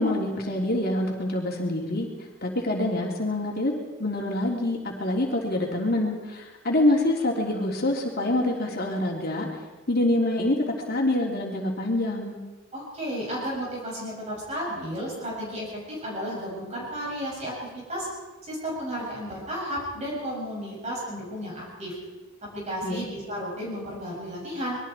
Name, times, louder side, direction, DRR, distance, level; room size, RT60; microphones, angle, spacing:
voice 1, 0.0-2.1 2.4-9.5 9.9-12.4 22.8-23.1, left 1 dB, 50° left, -1 dB, 3.4 m, -26 dB
voice 2, 12.7-18.1 18.4-22.0 22.5-24.8, equal, 35° right, -4 dB, 7.1 m, -33 dB
26.5 x 22.0 x 4.6 m, 1.2 s
head